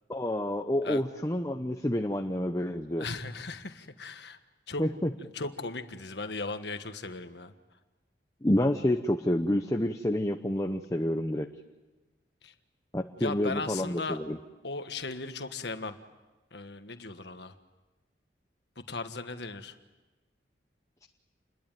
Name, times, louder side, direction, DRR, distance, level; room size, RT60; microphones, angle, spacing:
voice 1, 0.1-3.1 4.8-5.1 8.4-11.5 12.9-14.4, left 1 dB, 15° left, 6 dB, 0.8 m, -28 dB
voice 2, 3.0-4.4 4.7-4.8 5.2-7.5 12.4-12.5 13.2-14.2 14.6-16.0 16.5-17.5 18.8-19.8, left 3 dB, 65° left, 9 dB, 1.6 m, -37 dB
29.0 x 21.5 x 9.3 m, 1.2 s
head